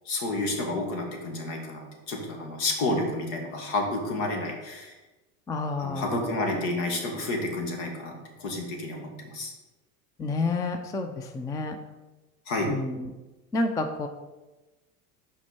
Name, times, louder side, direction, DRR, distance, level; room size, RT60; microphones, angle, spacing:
voice 1, 0.1-5.0 5.8-9.5 12.5-12.7, left 2 dB, 70° left, 2 dB, 1.9 m, -30 dB
voice 2, 5.5-6.3 10.2-11.8 12.6-13.1 13.5-14.1, left 3 dB, 10° left, 6 dB, 0.3 m, -29 dB
6.0 x 4.5 x 5.9 m, 1.1 s
hypercardioid pair, 90°, 46 cm